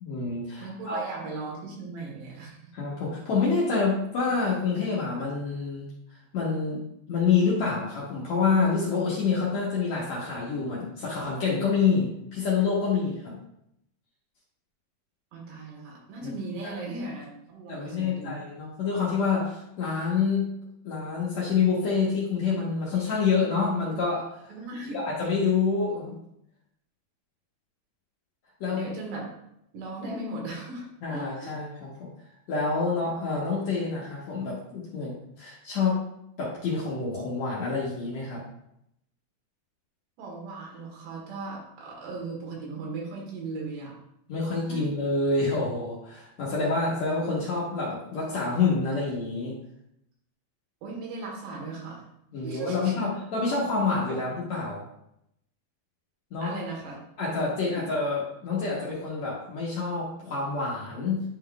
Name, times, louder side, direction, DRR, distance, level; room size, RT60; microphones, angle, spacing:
voice 1, 0.0-1.0 2.7-5.9 6.3-6.8 7.1-13.4 16.2-16.3 16.6-16.7 17.7-20.6 20.8-24.5 24.9-26.2 28.6-28.9 31.0-32.1 32.5-36.0 36.4-38.4 44.3-49.5 52.3-54.8 56.3-56.5 57.2-61.2, left 4 dB, 75° left, -6 dB, 1.6 m, -27 dB
voice 2, 0.6-2.6 15.3-18.4 24.5-25.0 28.7-29.2 29.7-30.9 31.1-31.6 40.2-44.0 44.7-44.8 50.8-52.0 52.4-52.9 54.1-54.2 56.4-57.0, right 3 dB, 80° right, -2 dB, 3.5 m, -37 dB
10.5 x 3.8 x 2.3 m, 0.77 s
omnidirectional pair, 4.8 m